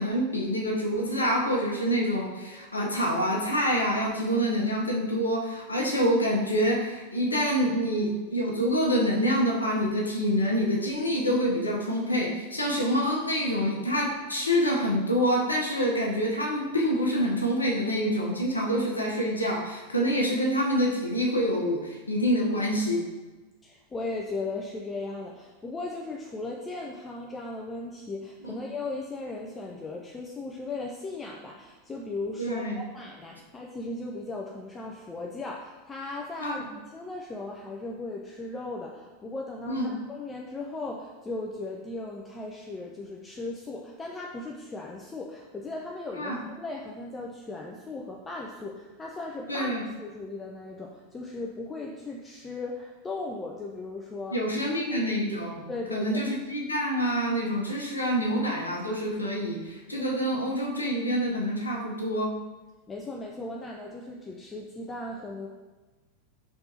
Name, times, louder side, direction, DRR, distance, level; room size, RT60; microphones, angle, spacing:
voice 1, 0.0-23.0 28.4-28.6 32.4-32.8 36.4-36.6 39.7-39.9 46.2-46.4 49.5-49.8 54.3-55.6 55.9-62.3, equal, 90° left, -2 dB, 0.7 m, -26 dB
voice 2, 23.6-54.4 54.9-55.1 55.7-56.2 62.9-65.5, left 2 dB, 20° left, 0 dB, 0.4 m, -37 dB
4.4 x 3.4 x 2.8 m, 1.2 s
figure-of-eight pair, 90°, 0 cm